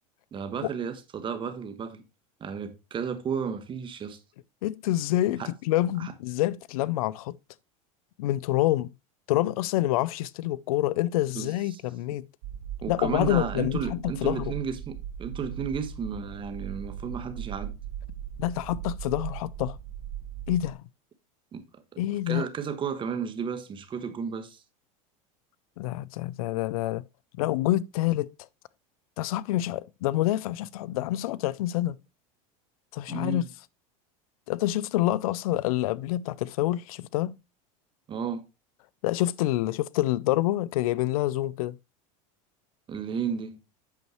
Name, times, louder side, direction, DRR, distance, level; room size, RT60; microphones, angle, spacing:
voice 1, 0.3-2.0 2.4-4.2 5.4-5.5 6.0-6.1 11.3-11.8 12.8-17.7 21.5-22.0 22.3-24.6 33.1-33.5 38.1-38.4 42.9-43.6, right 6 dB, 30° right, 1.1 m, -33 dB
voice 2, 4.6-7.4 8.2-8.9 9.3-12.3 12.9-14.5 18.4-19.8 20.5-20.8 22.0-22.5 25.8-27.0 27.4-28.3 29.2-32.0 32.9-33.4 34.5-37.4 39.0-41.8, left 15 dB, 80° left, 0.4 m, -27 dB
sound 1, 12.4-20.7, right 10 dB, 70° right, 1.5 m, -38 dB
8.4 x 6.4 x 3.0 m
supercardioid pair, 125°, 18 cm